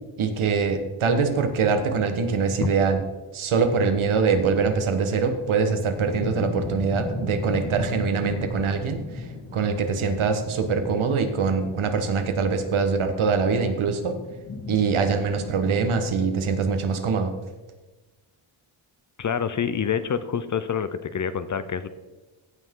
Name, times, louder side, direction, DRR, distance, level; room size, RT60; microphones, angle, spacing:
voice 1, 0.2-3.0 3.3-9.2 9.5-14.2 14.7-17.3, right 5 dB, 75° right, 7 dB, 1.3 m, -23 dB
sound 1, 4.9-16.3, left 3 dB, 80° left, 3.0 m, -37 dB
voice 2, 19.2-21.9, left 7 dB, 40° left, 12 dB, 0.5 m, -27 dB
15.5 x 5.9 x 3.7 m, 1.2 s
wide cardioid pair, 160°, 49 cm